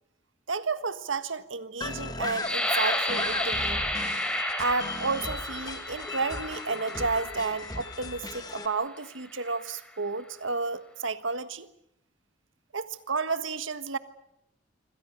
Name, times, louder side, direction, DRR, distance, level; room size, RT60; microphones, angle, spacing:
voice 1, 0.5-3.8 4.6-11.7 12.7-14.0, right 4 dB, 90° right, 12 dB, 1.5 m, -31 dB
sound 1, 1.8-8.7, left 2 dB, 20° left, 1.9 m, -36 dB
sound 2, 2.4-8.1 8.7-8.9 9.3-9.8, left 1 dB, 5° left, 4.3 m, -32 dB
27.0 x 25.0 x 6.6 m, 0.78 s
head